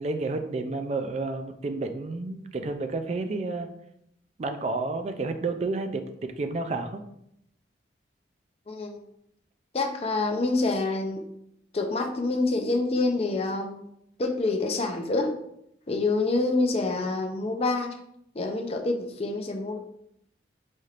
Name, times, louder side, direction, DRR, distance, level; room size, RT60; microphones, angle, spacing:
voice 1, 0.0-3.7 4.4-7.0, right 3 dB, 35° right, 7 dB, 0.3 m, -30 dB
voice 2, 8.7-9.0 9.7-11.2 11.7-13.8 14.2-15.3 15.9-18.0 18.3-19.8, left 3 dB, 35° left, 3 dB, 0.5 m, -27 dB
4.2 x 3.2 x 2.4 m, 0.75 s
head